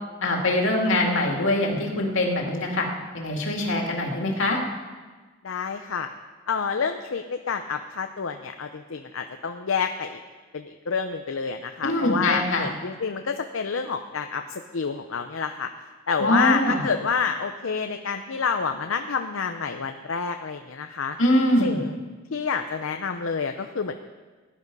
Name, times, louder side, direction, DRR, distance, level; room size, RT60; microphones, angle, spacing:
voice 1, 0.2-2.9 3.1-4.6 11.8-12.6 16.2-16.8 21.2-21.8, left 1 dB, 70° left, 0 dB, 2.5 m, -23 dB
voice 2, 5.4-6.1 6.5-10.2 10.5-15.7 16.1-21.2 21.6-21.9 22.3-24.1, left 5 dB, 90° left, 6 dB, 0.7 m, -28 dB
18.0 x 10.5 x 5.5 m, 1.4 s
head